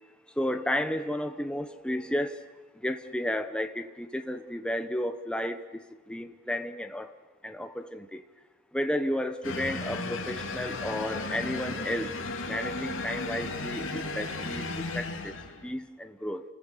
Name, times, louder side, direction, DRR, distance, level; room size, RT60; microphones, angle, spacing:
voice 1, 0.3-2.5 2.7-7.2 7.4-8.2 8.7-12.1 12.4-15.3 15.6-16.4, left 1 dB, 5° left, 1.0 m, -32 dB
sound 1, 9.4-15.7, left 3 dB, 65° left, 3.3 m, -35 dB
29.0 x 20.5 x 6.8 m
head